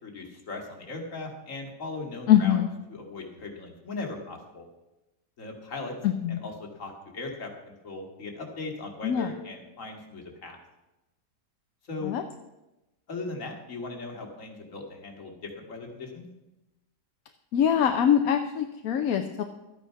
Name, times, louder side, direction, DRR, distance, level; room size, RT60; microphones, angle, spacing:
voice 1, 0.0-2.6 2.9-4.7 5.4-5.9 6.3-10.6 11.8-12.1 13.1-16.3, left 3 dB, 50° left, 2 dB, 2.3 m, -38 dB
voice 2, 2.3-2.7 6.0-6.4 9.0-9.3 12.0-12.2 17.5-19.4, left 9 dB, 65° left, 6 dB, 1.1 m, -23 dB
13.0 x 9.2 x 5.7 m, 0.98 s
omnidirectional pair, 1.8 m